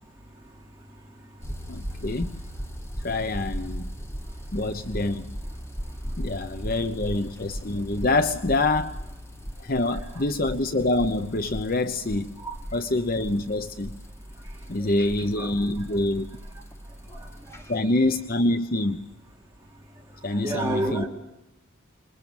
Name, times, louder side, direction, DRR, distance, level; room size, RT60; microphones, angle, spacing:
sound 1, 1.4-17.7, equal, 10° left, 1.3 m, -38 dB
voice 1, 1.7-2.3 3.0-3.9 4.5-5.3 6.2-8.9 9.6-12.3 12.7-13.9 14.7-16.3 17.7-19.0 20.2-21.0, left 2 dB, 45° left, 9 dB, 0.9 m, -26 dB
voice 2, 9.7-10.2 12.4-12.5 15.4-15.5 20.4-21.1, right 2 dB, 10° right, -4 dB, 3.5 m, -29 dB
26.5 x 22.0 x 7.2 m, 0.89 s
head